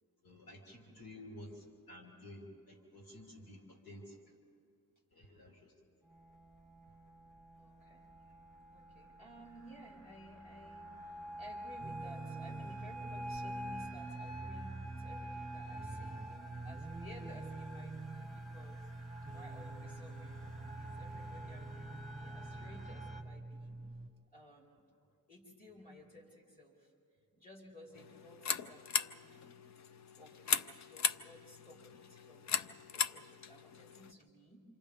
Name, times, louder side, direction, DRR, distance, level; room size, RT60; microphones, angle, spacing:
voice 1, 0.2-4.2 5.1-5.7, left 1 dB, 85° left, -2 dB, 3.6 m, -52 dB
sound 1, 6.1-23.2, right 1 dB, ahead, 1.8 m, -48 dB
voice 2, 7.6-8.0 8.7-10.9 11.4-16.3 16.6-18.8 19.3-23.8 24.3-24.8 25.3-26.9 27.4-29.5 30.2-34.6, equal, 25° left, -3 dB, 4.4 m, -56 dB
sound 2, 11.8-24.1, right 2 dB, 25° right, 0.9 m, -47 dB
sound 3, 27.9-34.1, left 6 dB, 50° left, 0.6 m, -38 dB
28.5 x 26.5 x 3.6 m, 2.3 s
wide cardioid pair, 105°, 36 cm